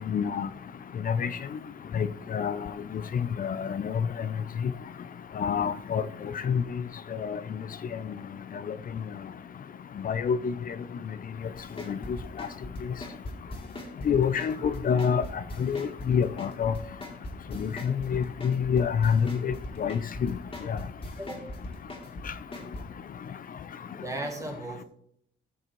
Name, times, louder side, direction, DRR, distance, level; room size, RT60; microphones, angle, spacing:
voice 1, 0.1-0.5 1.1-1.3 1.9-2.6 3.4-3.9 4.6-4.7 5.4-6.0 6.4-6.6 7.2-7.4 8.7-8.8 10.0-10.5 11.9-12.0 12.4-12.5 14.1-15.2 15.6-16.7 17.5-20.3 20.7-20.8, left 7 dB, 45° left, 13 dB, 0.5 m, -27 dB
sound 1, 11.6-22.8, left 1 dB, 25° left, 2.4 m, -39 dB
voice 2, 23.9-24.8, right 2 dB, 15° right, 2 dB, 1.3 m, -36 dB
14.0 x 6.4 x 3.1 m, 0.71 s
cardioid pair, 90°, 20 cm